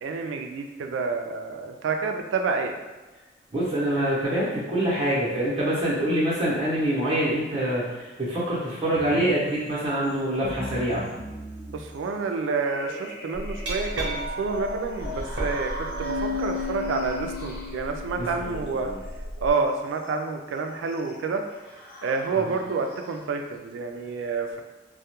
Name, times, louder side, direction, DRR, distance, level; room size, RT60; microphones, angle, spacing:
voice 1, 0.0-2.8 11.7-18.9 19.4-21.4 22.0-24.6, right 4 dB, 90° right, 5 dB, 0.3 m, -29 dB
voice 2, 3.5-11.0 18.2-19.0, right 1 dB, 30° right, -7 dB, 0.8 m, -25 dB
sound 1, 8.9-23.6, left 2 dB, 50° left, 0.6 m, -41 dB
Glass, 13.4-19.5, left 1 dB, 65° right, 0.6 m, -32 dB
2.3 x 2.1 x 2.8 m, 1.2 s
head